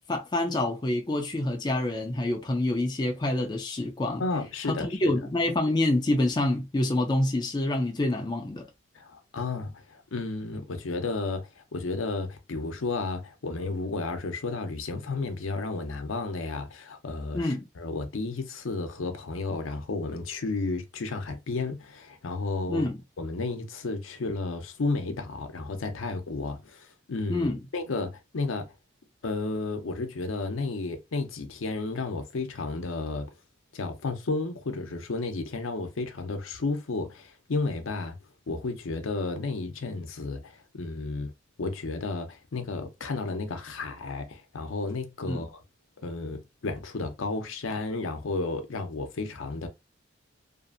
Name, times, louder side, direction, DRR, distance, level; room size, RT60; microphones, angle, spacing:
voice 1, 0.1-4.2 5.0-8.6 17.3-17.7 22.7-23.0 27.3-27.6 45.3-45.4, left 1 dB, 20° left, 0.3 m, -27 dB
voice 2, 4.2-5.1 8.9-22.9 23.2-28.7 29.2-33.3 33.7-38.2 38.5-41.3 41.6-45.6 46.0-49.7, left 3 dB, 85° left, 0.6 m, -32 dB
2.6 x 2.4 x 2.4 m
head